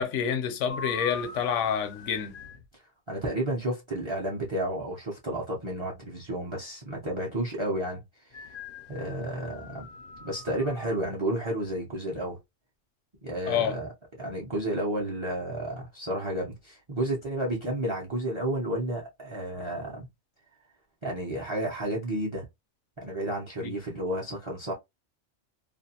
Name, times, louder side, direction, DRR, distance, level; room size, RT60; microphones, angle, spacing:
voice 1, 0.0-2.4 13.5-13.8 23.6-23.7, left 7 dB, 80° left, 0.9 m, -28 dB
sound 1, 0.7-2.7 8.3-11.0, left 5 dB, 60° left, 0.6 m, -42 dB
voice 2, 3.1-8.4 8.9-9.9 10.2-12.4 13.2-13.9 14.2-20.1 21.0-22.4 23.0-24.7, right 1 dB, 30° right, 0.6 m, -31 dB
2.5 x 2.2 x 2.7 m
omnidirectional pair, 1.3 m